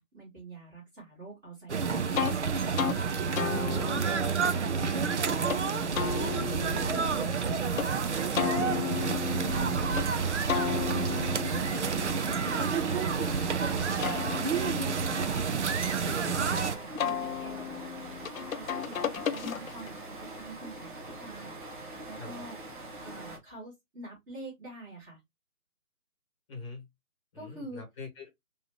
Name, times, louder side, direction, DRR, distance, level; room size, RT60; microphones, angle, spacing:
voice 1, 0.0-2.1 2.6-5.6 6.3-7.5 7.8-11.3 12.4-13.1 14.3-17.8 18.4-22.6 23.0-25.2 27.3-27.8, right 2 dB, 10° right, 1.3 m, -46 dB
sound 1, 1.7-16.8, right 6 dB, 50° right, 0.5 m, -29 dB
sound 2, 2.1-2.4 2.8-3.0 3.4-5.6 5.9-7.9 8.4-10.1 10.5-13.4 13.8-16.5 17.0-20.0, left 8 dB, 65° left, 0.5 m, -35 dB
sound 3, 7.9-23.4, right 2 dB, 35° right, 0.8 m, -43 dB
voice 2, 26.5-26.9 27.3-28.3, left 3 dB, 20° left, 1.1 m, -43 dB
3.0 x 2.7 x 3.0 m
figure-of-eight pair, 155°, 45 cm